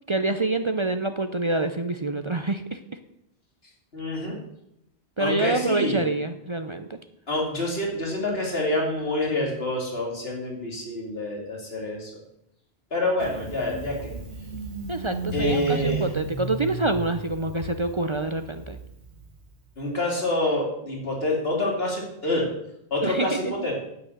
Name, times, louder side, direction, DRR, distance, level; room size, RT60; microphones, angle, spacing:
voice 1, 0.1-2.8 5.2-7.0 14.9-18.8 23.0-23.5, right 2 dB, 35° right, 8 dB, 0.5 m, -26 dB
voice 2, 3.9-4.4 5.2-6.1 7.3-12.1 12.9-14.1 15.3-16.1 19.8-22.5 22.9-23.8, left 1 dB, 60° left, -1 dB, 2.9 m, -27 dB
Engine starting, 13.2-19.7, right 3 dB, 70° right, 1.9 m, -34 dB
9.4 x 9.0 x 6.6 m, 0.80 s
omnidirectional pair, 1.2 m